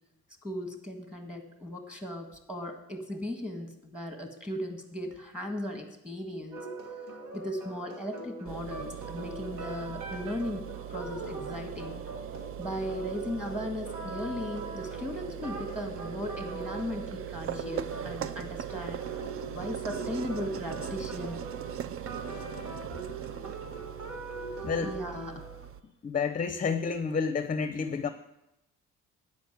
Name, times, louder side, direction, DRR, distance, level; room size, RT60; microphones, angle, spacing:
voice 1, 0.4-6.7 7.3-12.0 12.6-21.4 24.8-25.4, left 1 dB, 5° right, 4 dB, 1.7 m, -37 dB
sound 1, 6.5-25.6, right 2 dB, 85° right, 1.9 m, -42 dB
sound 2, 8.5-25.8, right 10 dB, 50° right, 0.5 m, -40 dB
voice 2, 24.6-24.9 26.0-28.1, left 5 dB, 25° left, 10 dB, 0.6 m, -29 dB
9.8 x 5.0 x 8.0 m, 0.88 s
cardioid pair, 90°, 30 cm